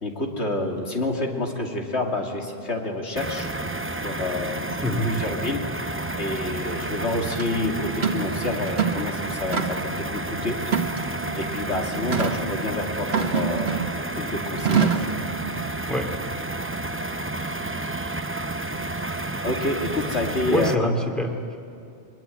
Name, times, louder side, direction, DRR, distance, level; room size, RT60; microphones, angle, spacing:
voice 1, 0.0-3.5 3.9-4.6 5.0-5.6 6.2-10.6 11.4-13.8 14.1-15.1 19.4-20.9, left 2 dB, 80° left, 1 dB, 3.0 m, -28 dB
sound 1, 3.2-20.7, right 2 dB, 15° right, 0.6 m, -31 dB
voice 2, 4.8-5.1 15.9-16.2 20.5-21.6, equal, ahead, 2 dB, 2.3 m, -25 dB
sound 2, 7.4-7.5 8.0-8.3 8.7-9.1 9.5-10.0 10.7-11.3 12.1-12.4 13.1-14.0 14.7-15.2, right 7 dB, 70° right, 1.6 m, -24 dB
23.0 x 21.5 x 9.1 m, 2.5 s
omnidirectional pair, 1.1 m